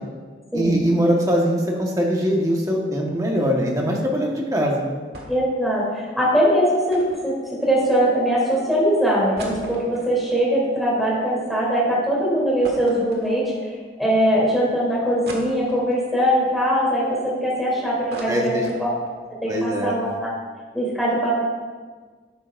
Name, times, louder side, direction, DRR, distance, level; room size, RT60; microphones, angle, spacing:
voice 1, 0.5-4.8 18.3-18.7 19.5-20.0, equal, 20° right, -1 dB, 1.4 m, -22 dB
sound 1, 5.1-5.6 5.8-5.9 6.9-8.2 8.7-8.8 9.1-11.6 11.9-12.0 12.6-13.8 14.3-14.4 15.3-16.1 16.6-17.6 17.9-19.2 19.6-19.7 19.9-20.1, right 1 dB, 60° right, 1.6 m, -40 dB
voice 2, 5.3-7.3 7.6-18.5 19.4-20.3 20.7-21.3, equal, ahead, -7 dB, 3.2 m, -21 dB
11.5 x 9.8 x 2.6 m, 1.5 s
head